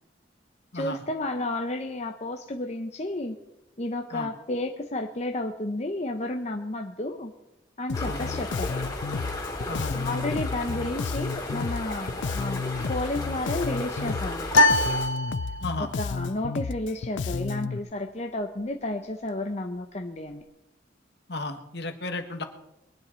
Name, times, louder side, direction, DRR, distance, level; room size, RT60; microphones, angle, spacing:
voice 1, 0.7-3.4 3.8-7.3 7.8-8.7 9.9-12.6 12.9-14.6 15.8-20.4, left 1 dB, 35° left, 3 dB, 0.8 m, -32 dB
Bass guitar, 7.9-17.8, left 5 dB, 75° left, 0.4 m, -32 dB
sound 1, 7.9-15.1, left 2 dB, 20° left, 2.8 m, -35 dB
sound 2, 14.5-16.0, left 2 dB, 90° left, 0.9 m, -22 dB
voice 2, 15.6-15.9 21.3-22.4, left 2 dB, 60° left, 6 dB, 1.4 m, -33 dB
22.0 x 10.0 x 4.4 m, 0.89 s
head